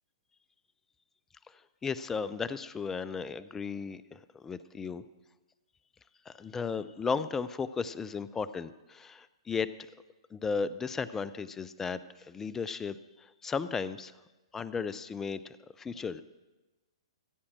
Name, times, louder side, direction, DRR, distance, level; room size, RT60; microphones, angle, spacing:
voice 1, 1.5-5.0 6.3-9.7 10.3-14.1 14.5-16.2, left 5 dB, 10° left, 15 dB, 0.4 m, -35 dB
15.5 x 8.5 x 6.1 m, 1.1 s
figure-of-eight pair, 115°, 3 cm